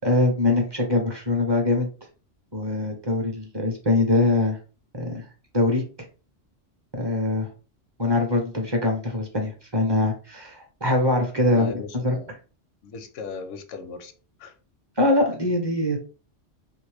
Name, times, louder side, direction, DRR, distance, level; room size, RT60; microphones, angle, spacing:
voice 1, 0.0-1.9 2.5-4.6 4.9-5.2 5.5-5.8 6.9-7.5 8.0-11.7 12.0-12.2 15.0-16.0, left 2 dB, 30° right, 0.6 m, -23 dB
voice 2, 11.5-12.3 12.8-14.1 14.4-14.5, left 5 dB, 85° left, 0.9 m, -37 dB
3.0 x 2.5 x 3.3 m
omnidirectional pair, 1.2 m